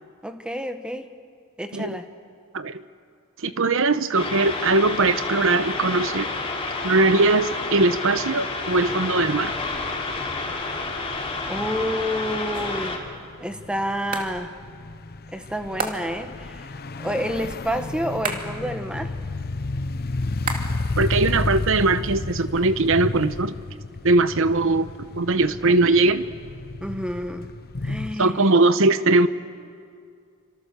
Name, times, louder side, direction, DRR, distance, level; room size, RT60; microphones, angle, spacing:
voice 1, 0.2-1.1 1.6-2.1 11.5-13.0 13.4-14.5 15.3-16.7 17.0-19.1 21.3-21.4 25.7-25.8 26.8-27.5 27.8-28.5, equal, 5° right, 7 dB, 1.4 m, -29 dB
voice 2, 3.4-6.3 6.8-9.6 21.0-23.5 24.0-24.9 25.1-26.2 28.2-29.3, right 3 dB, 65° right, 13 dB, 1.0 m, -20 dB
sound 1, 4.1-13.0, left 3 dB, 25° left, 3.4 m, -30 dB
sound 2, 8.7-28.1, left 2 dB, 45° left, 0.8 m, -33 dB
sound 3, 12.5-12.9 14.1-14.4 15.8-16.3 18.2-18.7 20.5-20.9 21.2-22.2, right 3 dB, 40° right, 2.4 m, -33 dB
29.0 x 26.0 x 6.9 m, 2.2 s
head